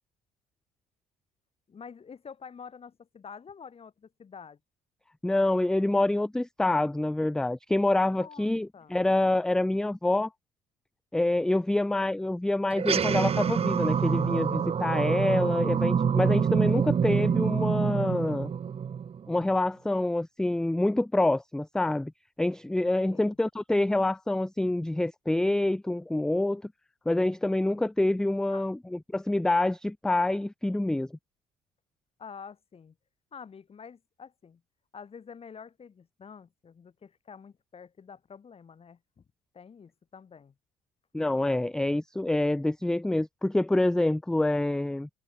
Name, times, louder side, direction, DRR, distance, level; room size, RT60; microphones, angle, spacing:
voice 1, 1.7-4.6 8.1-9.0 23.0-23.4 28.5-28.6 32.2-32.9 33.3-34.6 34.9-39.2 39.5-40.5, left 6 dB, 35° left, 6.4 m, -48 dB
voice 2, 5.2-10.3 11.1-18.5 19.3-22.1 22.4-26.6 27.1-31.1 41.1-45.1, left 2 dB, 5° left, 0.3 m, -26 dB
sound 1, 12.7-19.4, right 7 dB, 35° right, 1.1 m, -26 dB
cardioid pair, 110°, 17 cm